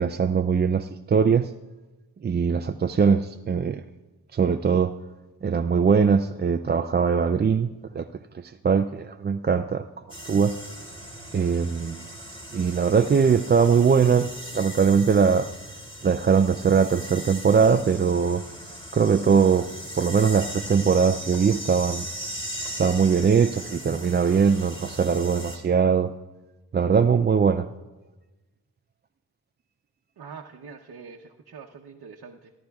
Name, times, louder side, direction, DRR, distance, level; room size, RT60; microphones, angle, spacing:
voice 1, 0.0-1.5 2.2-3.8 4.3-4.9 5.4-8.1 8.3-9.9 10.3-10.6 11.3-12.1 12.5-15.5 16.0-18.4 18.9-19.7 20.0-22.1 22.8-26.1 26.7-27.7, right 6 dB, 30° right, 7 dB, 0.3 m, -21 dB
sound 1, 10.1-25.6, equal, 15° left, 2.9 m, -38 dB
voice 2, 30.2-32.5, right 5 dB, 70° right, 0 dB, 0.9 m, -44 dB
25.5 x 12.0 x 2.3 m, 1.1 s
cardioid pair, 65°, 39 cm